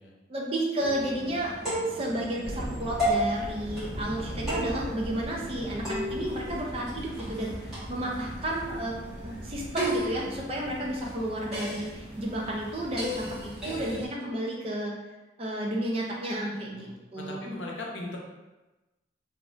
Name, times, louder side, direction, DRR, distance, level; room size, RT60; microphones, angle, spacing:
voice 1, 0.3-1.5 1.9-14.9 15.4-17.5, right 1 dB, 30° right, -2 dB, 0.5 m, -32 dB
sound 1, 0.8-14.1, equal, 5° right, 1.2 m, -35 dB
sound 2, 2.4-14.0, equal, 80° right, 0.6 m, -41 dB
voice 2, 16.7-18.2, left 2 dB, 80° left, -1 dB, 0.6 m, -40 dB
3.0 x 2.5 x 2.5 m, 1.1 s
head